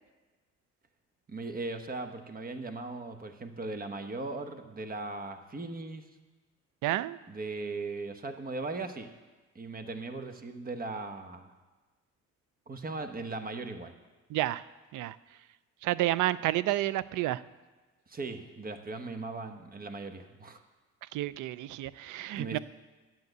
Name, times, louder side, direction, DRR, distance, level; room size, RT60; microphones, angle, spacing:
voice 1, 1.3-6.0 7.3-9.1 9.5-11.5 12.7-13.9 18.1-20.6 22.3-22.6, right 3 dB, 30° right, 7 dB, 1.1 m, -38 dB
voice 2, 6.8-7.2 14.3-14.6 14.9-15.2 15.8-17.4 21.1-22.6, right 15 dB, 80° right, 18 dB, 0.5 m, -30 dB
9.7 x 7.8 x 8.0 m, 1.3 s
cardioid pair, 90°, 30 cm